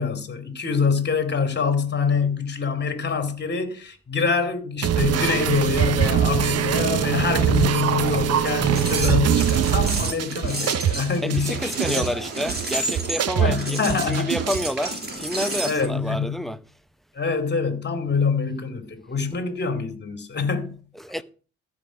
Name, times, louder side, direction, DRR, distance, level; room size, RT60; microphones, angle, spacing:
voice 1, 0.0-12.1 13.4-14.3 15.6-16.5 17.1-20.8, left 5 dB, 35° left, 2.5 m, -25 dB
sound 1, 4.8-14.8, right 9 dB, 55° right, 0.8 m, -23 dB
sound 2, 8.6-15.9, right 2 dB, 35° right, 4.8 m, -31 dB
voice 2, 11.2-13.8 14.0-16.6 21.0-21.2, equal, ahead, 0.7 m, -29 dB
13.5 x 5.3 x 6.2 m
cardioid pair, 90°, 30 cm